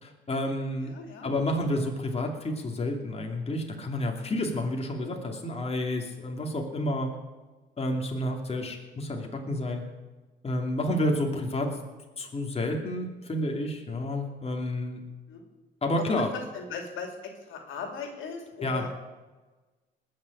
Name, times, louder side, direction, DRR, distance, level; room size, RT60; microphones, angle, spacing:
voice 1, 0.0-0.9 1.2-7.1 7.8-9.8 10.4-11.9 12.2-15.0 15.8-16.3 18.6-18.9, left 1 dB, 30° left, 1 dB, 2.7 m, -30 dB
voice 2, 0.9-1.3 8.6-8.8 15.3-15.4 16.0-17.1 17.5-18.9, left 5 dB, 80° left, 3 dB, 2.7 m, -38 dB
20.0 x 6.7 x 8.6 m, 1.2 s
cardioid pair, 90°, 20 cm